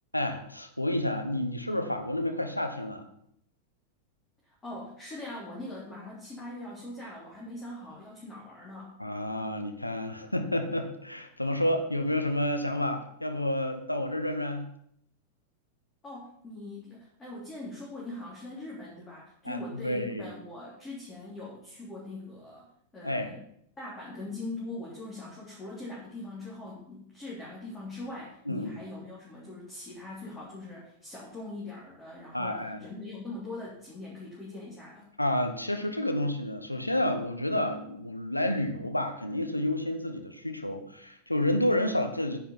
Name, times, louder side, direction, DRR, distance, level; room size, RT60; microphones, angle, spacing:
voice 1, 0.1-3.1 9.0-14.7 19.4-20.3 23.0-23.3 28.5-28.8 32.3-32.8 35.2-42.4, left 1 dB, 85° left, 6 dB, 1.2 m, -30 dB
voice 2, 4.4-8.9 16.0-22.6 22.9-23.4 23.8-35.1, left 2 dB, 15° left, -6 dB, 3.6 m, -42 dB
9.9 x 7.6 x 5.7 m, 0.70 s
figure-of-eight pair, 90°, 0 cm